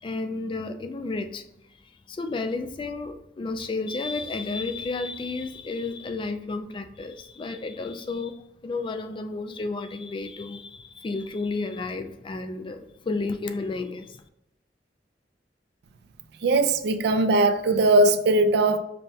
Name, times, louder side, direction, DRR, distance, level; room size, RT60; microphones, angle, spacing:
voice 1, 0.0-1.4 1.7-1.8 2.1-14.2, left 3 dB, 30° left, 0.3 m, -32 dB
voice 2, 16.4-18.8, right 2 dB, 65° right, 0.4 m, -20 dB
5.2 x 2.2 x 2.7 m
head